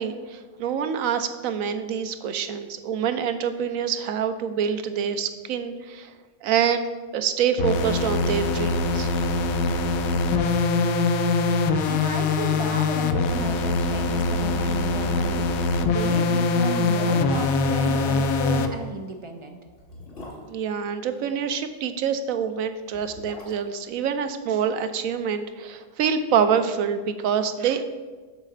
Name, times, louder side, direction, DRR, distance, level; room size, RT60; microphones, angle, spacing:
voice 1, 0.0-6.1 6.4-6.8 7.1-9.1 20.5-27.8, right 7 dB, 80° right, 9 dB, 1.0 m, -26 dB
sound 1, 7.6-18.7, left 3 dB, 85° left, 1.1 m, -23 dB
voice 2, 11.8-19.6, right 1 dB, 45° right, 4 dB, 0.4 m, -33 dB
sound 2, 16.3-17.3 18.8-21.4 22.7-24.9 25.2-25.3, left 1 dB, 45° left, 1.8 m, -45 dB
7.4 x 4.0 x 6.6 m, 1.4 s
omnidirectional pair, 1.4 m